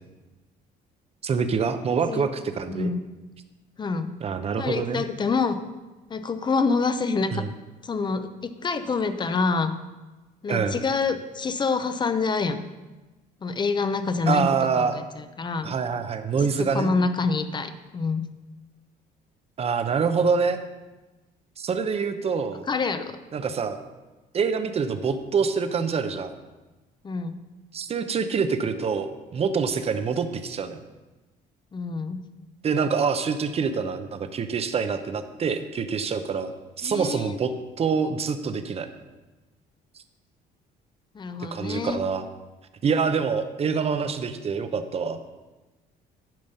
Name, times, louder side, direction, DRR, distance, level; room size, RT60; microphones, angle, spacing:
voice 1, 1.2-2.9 4.2-5.1 7.3-7.5 10.5-10.8 14.3-15.0 15.6-16.9 19.6-20.6 21.6-22.7 23.3-23.8 24.3-26.3 27.7-30.8 32.6-38.9 41.5-42.3 42.8-45.2, right 5 dB, 35° right, 9 dB, 0.8 m, -26 dB
voice 2, 2.7-3.0 3.8-4.1 4.6-5.6 6.1-7.4 7.8-9.7 10.4-12.6 13.4-14.4 14.8-15.7 16.4-16.5 16.7-18.3 22.7-23.0 27.0-27.4 31.7-32.2 36.8-37.4 41.1-42.0, left 4 dB, 25° left, 10 dB, 0.7 m, -26 dB
10.5 x 5.2 x 5.6 m, 1.2 s
cardioid pair, 110°, 17 cm